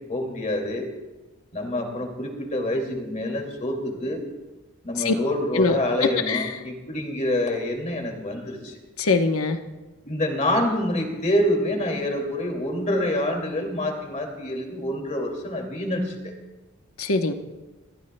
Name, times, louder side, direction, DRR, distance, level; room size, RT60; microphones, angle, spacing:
voice 1, 0.1-0.9 1.5-4.2 4.8-8.7 10.1-16.3, left 1 dB, 35° left, 3 dB, 2.3 m, -26 dB
voice 2, 5.5-6.5 9.0-9.6 17.0-17.3, left 3 dB, 80° left, 6 dB, 1.0 m, -23 dB
27.5 x 14.0 x 2.2 m, 1.2 s
head